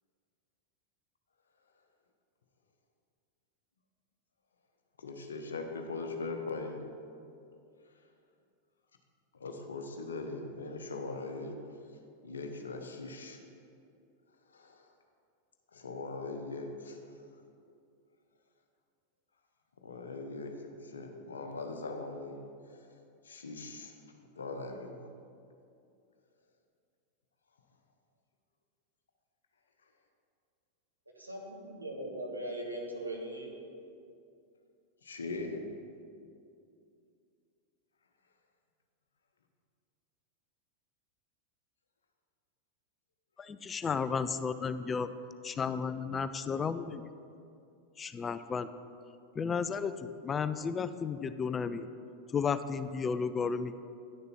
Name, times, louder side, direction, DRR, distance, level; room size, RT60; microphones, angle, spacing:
voice 1, 5.0-6.8 9.3-11.6 12.2-13.4 14.5-14.9 15.7-17.1 19.8-22.4 23.2-23.9 24.4-24.9 35.0-35.6, left 3 dB, 70° left, 5 dB, 0.9 m, -40 dB
voice 2, 31.2-33.5, right 1 dB, 85° right, -1 dB, 1.3 m, -39 dB
voice 3, 43.4-45.1 45.4-47.1 48.0-48.7 49.3-51.9 52.3-53.8, left 5 dB, 20° left, 12 dB, 0.3 m, -33 dB
10.0 x 6.6 x 4.3 m, 2.5 s
figure-of-eight pair, 90°, 0 cm